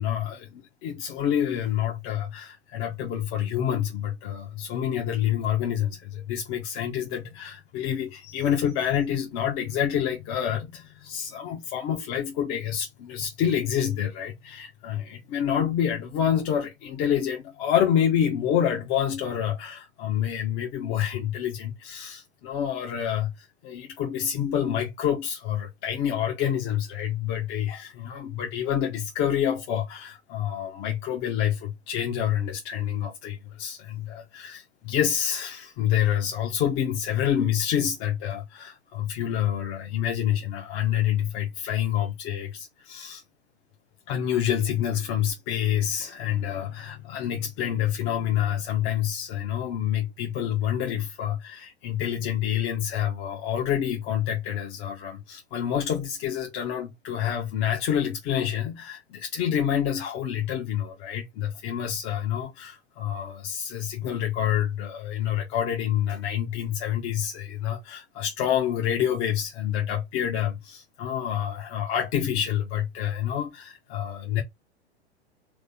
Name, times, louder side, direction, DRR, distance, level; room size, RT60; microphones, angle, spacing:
voice 1, 0.0-43.2 44.1-74.4, left 10 dB, 35° left, 1.2 m, -27 dB
3.7 x 3.7 x 3.6 m
figure-of-eight pair, 100°, 33 cm